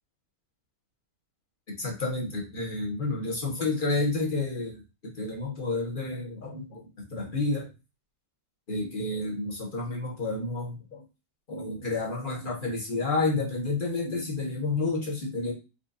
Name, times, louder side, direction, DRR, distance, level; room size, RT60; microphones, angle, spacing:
voice 1, 1.8-7.7 8.7-11.0 11.5-15.5, left 3 dB, 30° left, 1.1 m, -30 dB
5.3 x 3.3 x 2.6 m
omnidirectional pair, 2.4 m